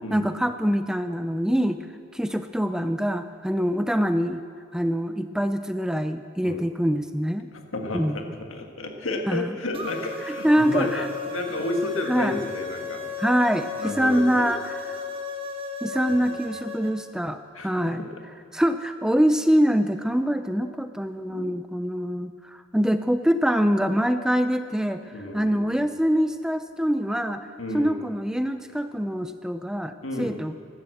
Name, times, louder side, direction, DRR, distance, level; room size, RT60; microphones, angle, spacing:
voice 1, 0.1-1.8 2.1-4.4 4.7-7.5 7.9-8.2 9.3-9.6 10.3-11.1 12.1-12.4 13.2-15.0 15.8-18.0 18.5-27.5 27.7-30.5, equal, 5° right, 9 dB, 0.4 m, -24 dB
voice 2, 7.5-8.2 8.5-13.1 13.8-14.5 16.1-16.3 17.5-17.9 21.3-21.5 25.1-25.9 27.6-28.0 30.0-30.4, left 2 dB, 85° left, 3 dB, 1.7 m, -31 dB
sound 1, 9.7-16.9, left 4 dB, 25° right, 1.2 m, -35 dB
13.0 x 12.0 x 7.8 m, 2.2 s
head